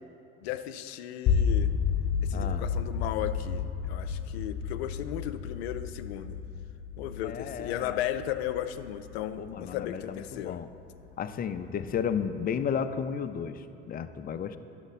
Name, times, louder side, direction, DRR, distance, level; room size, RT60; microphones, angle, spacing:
voice 1, 0.4-1.7 2.2-6.4 7.0-10.6, left 11 dB, 85° left, 9 dB, 0.5 m, -35 dB
sound 1, 1.3-11.2, left 6 dB, 45° left, 0.9 m, -32 dB
voice 2, 2.3-2.7 7.2-8.0 9.4-10.7 11.2-14.6, left 7 dB, 30° left, 9 dB, 0.5 m, -33 dB
11.5 x 6.4 x 4.1 m, 2.7 s
hypercardioid pair, 75°, 31 cm